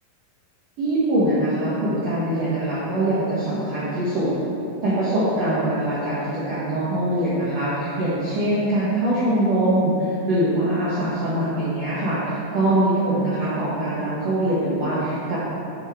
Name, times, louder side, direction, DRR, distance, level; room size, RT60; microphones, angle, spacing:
voice 1, 0.8-4.3 4.8-15.4, right 1 dB, 75° right, -10 dB, 1.5 m, -23 dB
8.7 x 4.0 x 4.4 m, 2.7 s
omnidirectional pair, 4.6 m